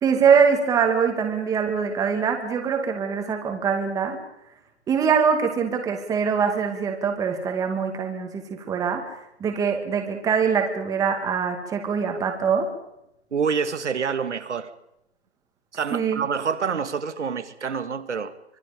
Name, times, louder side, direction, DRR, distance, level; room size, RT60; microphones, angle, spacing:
voice 1, 0.0-4.2 4.9-9.0 9.4-12.7 15.9-16.3, right 6 dB, 10° right, 4 dB, 2.3 m, -23 dB
voice 2, 13.3-14.7 15.7-18.3, right 6 dB, 85° right, 10 dB, 2.2 m, -27 dB
25.5 x 22.0 x 5.3 m, 0.83 s
hypercardioid pair, 160°, 34 cm